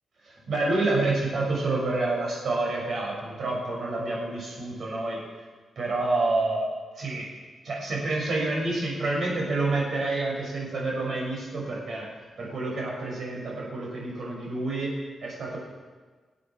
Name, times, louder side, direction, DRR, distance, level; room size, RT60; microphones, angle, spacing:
voice 1, 0.2-5.2 5.7-6.7 6.9-7.3 7.6-12.1 12.4-14.9 15.2-15.6, right 2 dB, 55° right, -3 dB, 6.6 m, -28 dB
26.0 x 8.9 x 6.3 m, 1.4 s
wide cardioid pair, 175°, 0 cm